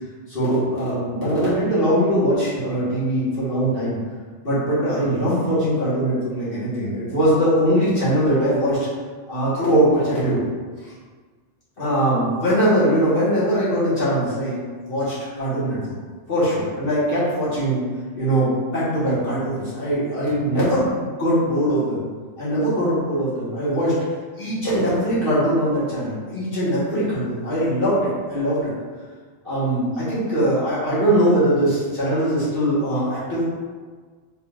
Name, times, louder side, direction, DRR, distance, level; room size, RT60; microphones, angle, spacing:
voice 1, 0.3-4.0 4.4-8.9 9.3-10.4 10.8-10.9 11.8-15.9 16.3-17.8 18.2-22.1 22.4-23.9 24.4-28.7 29.4-33.4, equal, 50° left, -11 dB, 1.5 m, -21 dB
3.8 x 3.5 x 2.4 m, 1.5 s
omnidirectional pair, 1.2 m